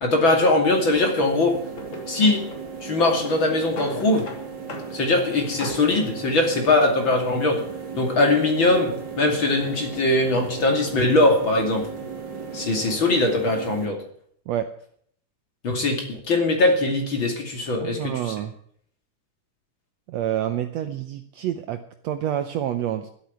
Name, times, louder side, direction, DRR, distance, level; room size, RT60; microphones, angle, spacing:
voice 1, 0.0-1.6 2.1-2.4 2.8-4.3 4.9-7.6 8.0-11.9 12.5-14.0 15.6-18.3, left 2 dB, 40° left, 2 dB, 3.1 m, -21 dB
sound 1, 0.7-13.9, right 5 dB, 35° right, 2.4 m, -36 dB
Drawer open or close, 0.9-1.2 1.7-2.6 2.9-4.4 4.7-4.9 5.2-5.9, left 2 dB, 60° left, 4.0 m, -36 dB
voice 2, 17.8-18.5 20.1-23.1, right 11 dB, 70° right, 8 dB, 1.7 m, -28 dB
13.0 x 8.6 x 9.3 m, 0.63 s
omnidirectional pair, 3.7 m